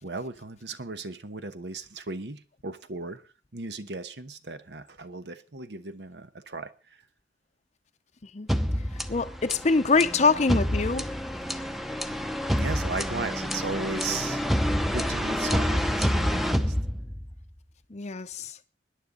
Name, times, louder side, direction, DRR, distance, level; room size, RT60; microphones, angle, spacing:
voice 1, 0.0-3.2 3.5-7.0 12.5-14.5 14.9-16.7, right 3 dB, 70° right, 1.0 m, -36 dB
sound 1, 8.5-17.4, equal, ahead, 0.7 m, -28 dB
voice 2, 9.1-11.0 17.9-18.6, left 4 dB, 40° left, 0.6 m, -24 dB
21.5 x 10.0 x 3.8 m
head